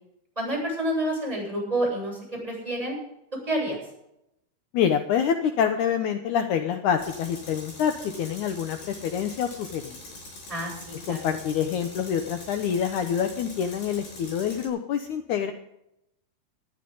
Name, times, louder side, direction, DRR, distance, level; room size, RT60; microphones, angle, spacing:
voice 1, 0.4-3.0 3.5-3.8 10.5-11.2, right 1 dB, 10° right, -4 dB, 7.9 m, -28 dB
voice 2, 4.7-10.0 11.1-15.5, left 8 dB, 75° left, 6 dB, 1.8 m, -26 dB
Tools, 7.0-14.7, left 2 dB, 55° left, 8.6 m, -44 dB
20.0 x 13.5 x 4.0 m, 0.82 s
omnidirectional pair, 4.7 m